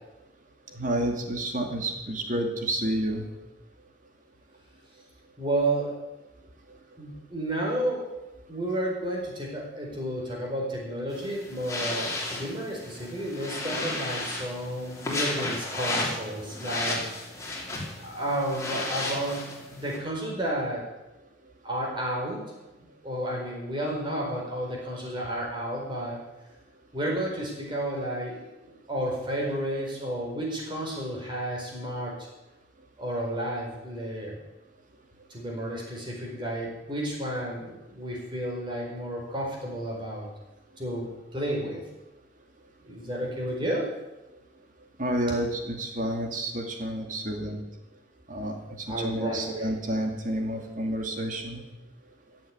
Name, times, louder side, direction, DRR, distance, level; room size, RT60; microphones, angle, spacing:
voice 1, 0.7-3.2 45.0-47.6 48.3-51.6, right 1 dB, 45° right, 3 dB, 2.4 m, -30 dB
voice 2, 5.4-6.0 7.0-8.1 8.5-17.0 18.0-20.9 21.6-22.4 23.0-26.2 26.9-28.4 28.6-32.2 33.0-34.4 35.3-40.3 40.8-41.8 42.9-43.9 48.9-49.6, right 1 dB, 25° right, -1 dB, 4.5 m, -31 dB
sound 1, 11.1-20.0, left 2 dB, 15° left, 3.1 m, -33 dB
15.0 x 7.4 x 9.4 m, 0.99 s
head